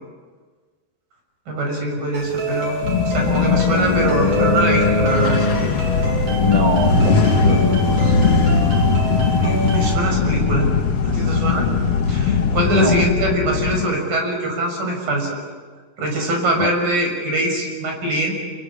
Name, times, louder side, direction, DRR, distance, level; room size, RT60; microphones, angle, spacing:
voice 1, 1.5-5.7 9.1-10.7 11.0-11.7 12.1-15.4 16.0-18.3, right 1 dB, 70° right, 2 dB, 7.8 m, -23 dB
sound 1, 2.1-9.9, right 2 dB, 30° right, 7.7 m, -27 dB
sound 2, 2.8-13.9, left 8 dB, 85° left, 3.0 m, -23 dB
voice 2, 3.3-5.7 6.4-8.2 12.7-13.1 16.6-16.7, left 2 dB, 25° left, 2 dB, 0.8 m, -22 dB
sound 3, 5.1-13.1, left 3 dB, 50° left, 1.9 m, -21 dB
28.0 x 23.5 x 8.7 m, 1.5 s
omnidirectional pair, 4.2 m